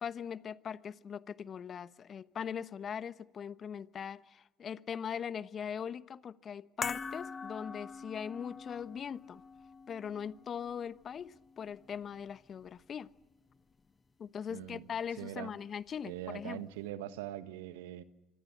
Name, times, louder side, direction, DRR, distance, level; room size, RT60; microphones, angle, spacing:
voice 1, 0.0-9.4 9.9-13.1 14.2-16.6, left 7 dB, 50° left, 1.0 m, -40 dB
sound 1, 6.8-13.2 13.5-13.6, left 5 dB, 35° left, 1.5 m, -45 dB
voice 2, 14.5-14.8 15.2-15.5 16.0-18.0, right 13 dB, 80° right, 1.3 m, -42 dB
26.0 x 24.5 x 7.4 m
hypercardioid pair, 55°, 0 cm